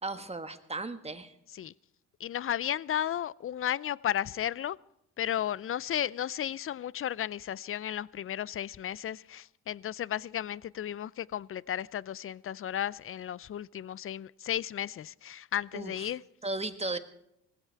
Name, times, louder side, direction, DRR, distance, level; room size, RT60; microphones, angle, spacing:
voice 1, 0.0-1.3 15.7-16.1 16.4-17.0, right 2 dB, 15° right, 1.5 m, -35 dB
voice 2, 2.2-4.8 5.2-16.2, left 10 dB, 40° left, 0.5 m, -34 dB
19.0 x 16.0 x 4.6 m
supercardioid pair, 65°, 36 cm